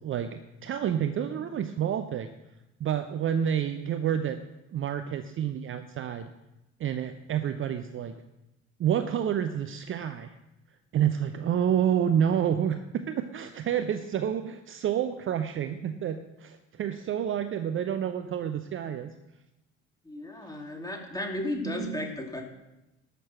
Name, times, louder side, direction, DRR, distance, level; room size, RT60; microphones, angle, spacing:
voice 1, 0.0-2.3 2.8-4.4 4.7-6.3 6.8-8.2 8.8-10.3 10.9-19.1 21.6-22.0, right 9 dB, 35° right, 9 dB, 0.7 m, -29 dB
voice 2, 20.0-22.4, left 1 dB, 10° left, 2 dB, 2.7 m, -34 dB
12.0 x 6.7 x 7.6 m, 0.95 s
figure-of-eight pair, 55°, 36 cm